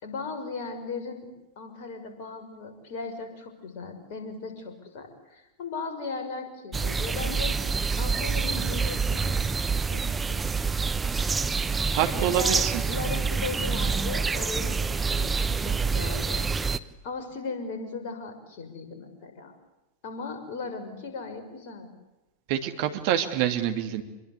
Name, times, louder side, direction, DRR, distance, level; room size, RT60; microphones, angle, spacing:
voice 1, 0.0-1.3 1.6-7.5 8.0-10.0 10.3-10.4 12.1-14.8 15.1-16.5 17.0-19.6 20.0-21.9, left 4 dB, 50° left, 6 dB, 6.3 m, -37 dB
sound 1, 6.7-16.8, right 5 dB, 15° right, 1.1 m, -27 dB
voice 2, 11.9-12.8 22.5-24.0, right 10 dB, 50° right, 7 dB, 2.7 m, -26 dB
27.0 x 22.0 x 8.4 m, 1.0 s
figure-of-eight pair, 90°, 0 cm